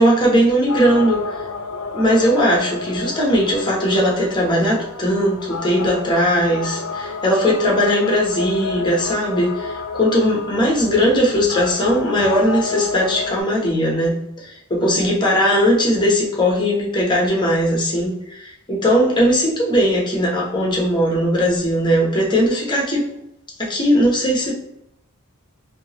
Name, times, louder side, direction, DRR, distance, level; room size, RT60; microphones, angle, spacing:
voice 1, 0.0-1.4 1.9-23.0 23.6-24.5, equal, 20° left, -2 dB, 1.0 m, -18 dB
sound 1, 0.7-13.4, left 4 dB, 75° left, 0.5 m, -30 dB
3.5 x 2.8 x 2.9 m, 0.81 s
head